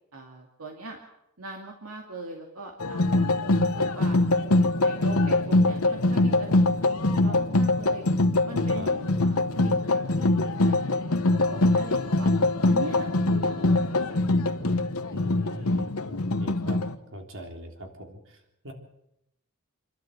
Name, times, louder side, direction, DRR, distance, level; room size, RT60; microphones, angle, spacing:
voice 1, 0.1-1.0 1.4-3.3 3.6-4.2 4.7-8.0 8.4-10.8 11.1-12.3 12.7-14.6 15.3-15.8, right 2 dB, 80° right, 2 dB, 2.4 m, -41 dB
sound 1, 2.8-16.9, left 2 dB, 85° left, 1.1 m, -23 dB
voice 2, 15.1-16.8 17.1-18.7, equal, 60° right, 3 dB, 3.5 m, -41 dB
27.0 x 12.5 x 8.0 m, 0.82 s
head